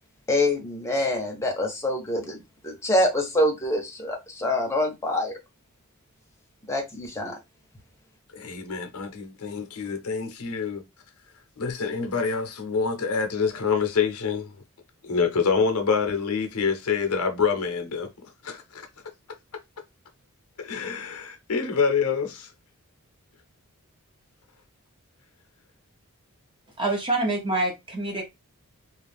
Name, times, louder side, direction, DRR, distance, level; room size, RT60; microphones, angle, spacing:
voice 1, 0.3-2.4 2.6-5.4 6.7-7.4, left 1 dB, 15° left, 0.8 m, -25 dB
voice 2, 8.3-10.8 11.6-14.5 15.0-18.1 18.4-18.9 20.6-22.5, left 5 dB, 75° left, 0.7 m, -26 dB
voice 3, 26.8-28.2, right 2 dB, 20° right, 0.9 m, -26 dB
2.4 x 2.3 x 3.4 m
head